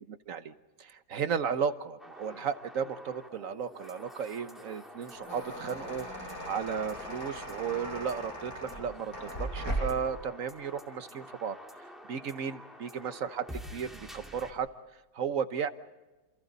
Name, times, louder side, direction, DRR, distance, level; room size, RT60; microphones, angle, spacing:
voice 1, 0.1-11.6 12.1-14.7 15.1-15.7, right 7 dB, 50° right, 11 dB, 1.3 m, -34 dB
sound 1, 2.0-14.5, equal, ahead, 2.4 m, -49 dB
sound 2, 4.9-10.1, right 1 dB, 50° left, 8.7 m, -38 dB
29.0 x 28.0 x 4.1 m, 1.2 s
omnidirectional pair, 1.9 m